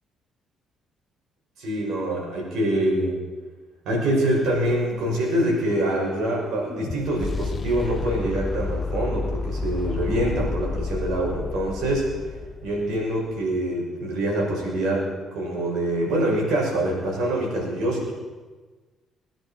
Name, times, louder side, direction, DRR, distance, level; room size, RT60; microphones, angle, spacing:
voice 1, 1.6-3.2 3.8-12.0 12.6-18.1, right 1 dB, 75° right, -2 dB, 6.1 m, -25 dB
sound 1, 5.0-13.1, left 3 dB, 30° left, 0.6 m, -31 dB
21.0 x 10.5 x 5.9 m, 1.3 s
cardioid pair, 105°, 0 cm